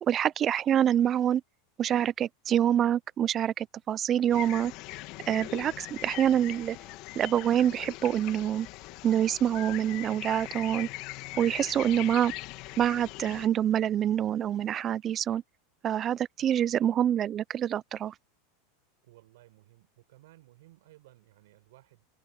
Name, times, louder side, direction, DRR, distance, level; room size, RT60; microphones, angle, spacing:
voice 1, 0.0-1.4 1.8-4.7 5.3-6.8 7.2-8.7 9.0-10.9 11.4-12.3 12.8-15.4 15.8-18.1, right 10 dB, 35° right, 0.4 m, -26 dB
sound 1, 4.3-13.5, left 20 dB, 55° left, 1.6 m, -41 dB
sound 2, 6.1-13.1, left 8 dB, 25° left, 4.2 m, -62 dB
voice 2, 11.9-12.4 16.4-16.8 19.0-22.1, right 17 dB, 75° right, 5.8 m, -58 dB
supercardioid pair, 120°, 0 cm